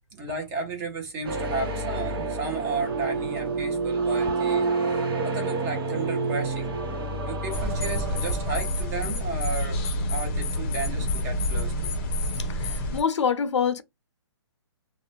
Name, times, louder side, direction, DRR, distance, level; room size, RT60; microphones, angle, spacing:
voice 1, 0.1-4.7 5.2-6.7 7.2-9.8 10.1-11.9, right 4 dB, 15° right, 0.6 m, -33 dB
sound 1, 1.2-9.1, right 3 dB, 55° right, 1.0 m, -28 dB
sound 2, 7.5-13.0, left 1 dB, 30° left, 0.6 m, -28 dB
voice 2, 12.4-13.8, left 7 dB, 85° left, 0.5 m, -26 dB
2.4 x 2.1 x 3.1 m
hypercardioid pair, 160°, 15 cm